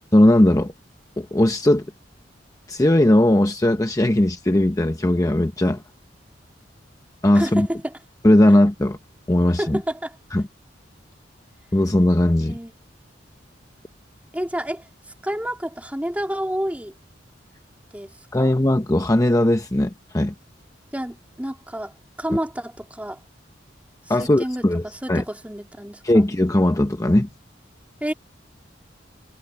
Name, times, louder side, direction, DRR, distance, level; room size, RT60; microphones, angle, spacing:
voice 1, 0.1-0.7 1.2-1.9 2.7-5.8 7.2-7.7 8.2-9.0 9.3-9.8 10.3-10.5 11.7-12.6 18.3-20.3 24.1-24.8 25.1-25.2 26.0-27.3, left 1 dB, 20° left, 0.8 m, -18 dB
voice 2, 7.3-7.9 9.6-10.2 12.5-12.7 14.3-14.9 15.2-16.9 17.9-18.5 20.9-23.2 24.1-26.2 28.0-28.1, equal, 10° right, 2.8 m, -29 dB
head